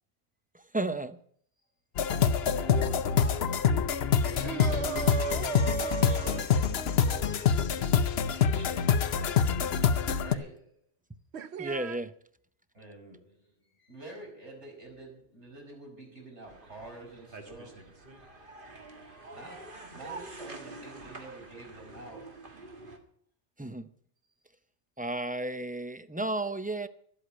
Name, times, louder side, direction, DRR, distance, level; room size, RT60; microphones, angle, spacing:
voice 1, 0.7-1.2 11.6-12.1 23.6-23.9 25.0-26.9, right 2 dB, 10° right, 11 dB, 0.4 m, -33 dB
sound 1, 2.0-10.4, left 7 dB, 65° left, 1.0 m, -26 dB
voice 2, 2.5-9.6 10.2-10.8 12.7-18.1 19.3-22.5, right 2 dB, 90° right, 0 dB, 6.1 m, -47 dB
sound 2, 4.4-7.0 9.6-9.7 11.3-12.0, right 7 dB, 70° right, 1.0 m, -36 dB
sound 3, 16.5-23.0, right 3 dB, 50° right, 1.9 m, -47 dB
12.5 x 8.4 x 8.7 m, 0.63 s
omnidirectional pair, 1.2 m